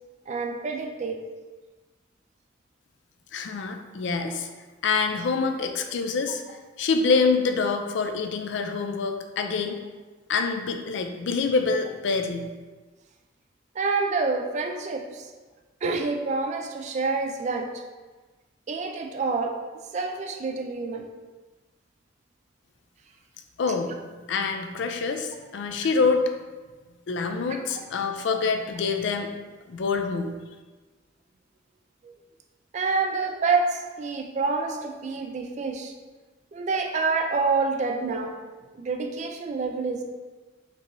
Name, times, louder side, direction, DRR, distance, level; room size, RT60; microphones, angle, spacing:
voice 1, 0.3-1.2 13.8-15.3 15.8-17.7 18.7-19.5 19.9-21.1 32.0-32.1 32.7-35.9 36.5-38.3 38.7-40.0, right 4 dB, 35° right, 4 dB, 0.3 m, -27 dB
voice 2, 3.3-4.5 4.8-6.4 6.8-9.8 10.3-12.5 23.6-23.9 24.3-26.3 27.1-29.3 29.7-30.3, left 4 dB, 65° left, 5 dB, 0.4 m, -26 dB
4.5 x 3.0 x 2.6 m, 1.3 s
head